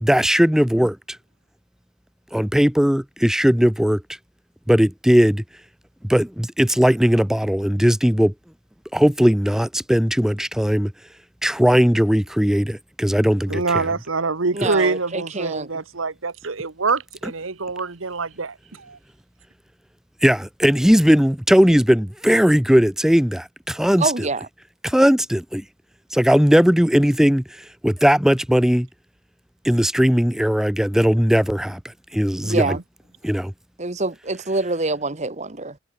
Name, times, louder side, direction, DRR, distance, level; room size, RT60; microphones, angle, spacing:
voice 1, 0.0-1.2 2.3-4.0 4.7-5.4 6.1-8.3 8.9-10.9 11.4-13.8 20.2-24.1 24.8-25.6 26.1-28.9 29.6-32.8 33.2-33.5, equal, 5° right, 0.4 m, -18 dB
voice 2, 13.5-19.0 32.5-32.8, right 4 dB, 85° right, 1.3 m, -25 dB
voice 3, 14.5-15.7 24.0-24.5 32.4-32.8 33.8-35.8, right 3 dB, 35° right, 1.6 m, -25 dB
head